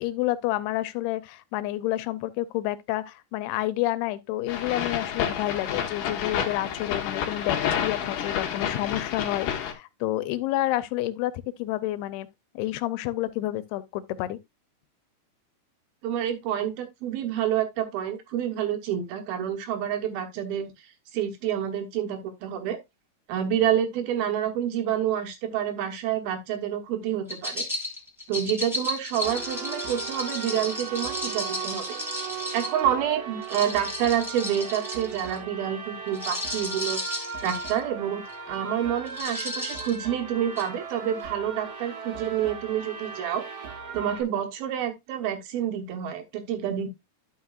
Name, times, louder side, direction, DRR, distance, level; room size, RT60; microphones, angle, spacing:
voice 1, 0.0-12.3 12.5-14.4, left 15 dB, 90° left, 2.7 m, -29 dB
sound 1, 4.5-9.7, left 8 dB, 65° left, 2.6 m, -29 dB
voice 2, 16.0-20.7 21.1-22.8 23.3-27.6 28.3-32.0 32.5-37.0 37.4-43.4 43.9-46.9, right 10 dB, 75° right, 2.9 m, -28 dB
sound 2, 27.3-32.8 33.4-35.4 36.1-37.8 38.3-38.5 39.0-40.0 40.6-40.7, left 1 dB, ahead, 1.5 m, -34 dB
sound 3, 29.2-44.2, right 6 dB, 50° right, 2.1 m, -38 dB
12.0 x 5.9 x 2.4 m
omnidirectional pair, 4.5 m